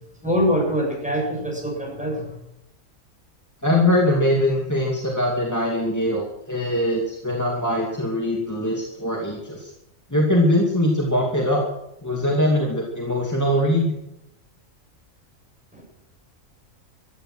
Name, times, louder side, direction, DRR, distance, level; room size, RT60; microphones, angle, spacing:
voice 1, 0.2-2.4 15.7-15.8, equal, 5° right, -1 dB, 7.5 m, -24 dB
voice 2, 3.6-9.7 10.1-11.6 12.0-13.9, left 1 dB, 10° left, -1 dB, 2.4 m, -22 dB
15.5 x 14.0 x 6.2 m, 0.87 s
omnidirectional pair, 1.4 m